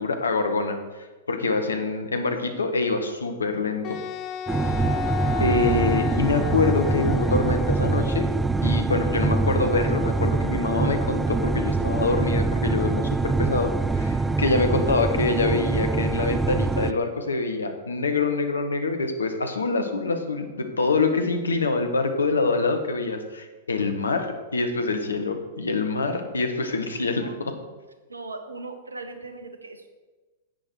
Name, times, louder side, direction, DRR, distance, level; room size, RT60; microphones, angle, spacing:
voice 1, 0.0-4.0 5.4-8.3 8.6-27.5, left 3 dB, 75° left, 6 dB, 1.4 m, -25 dB
Wind instrument woodwind instrument, 3.8-8.1, left 10 dB, 35° left, 0.7 m, -33 dB
sound 1, 4.5-16.9, right 3 dB, 10° right, 0.4 m, -24 dB
voice 2, 5.3-5.9 21.1-21.4 27.2-27.6 28.1-29.9, right 3 dB, 80° right, 7 dB, 1.4 m, -39 dB
10.5 x 8.9 x 4.8 m, 1.2 s
figure-of-eight pair, 100°, 0 cm